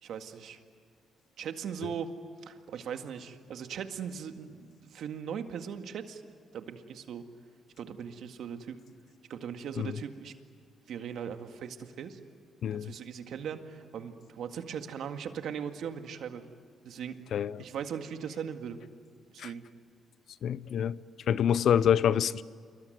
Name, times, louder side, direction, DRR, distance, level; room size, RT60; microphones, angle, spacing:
voice 1, 0.0-0.6 1.4-2.1 2.4-6.2 6.5-7.2 7.8-8.8 9.3-10.3 10.9-12.2 12.7-16.4 16.8-18.8 19.3-19.6, right 7 dB, 70° right, 1.9 m, -39 dB
voice 2, 17.3-17.6 19.4-19.5 20.4-21.0 21.3-22.4, left 9 dB, 65° left, 0.7 m, -26 dB
27.5 x 23.0 x 9.3 m
cardioid pair, 90°, 0 cm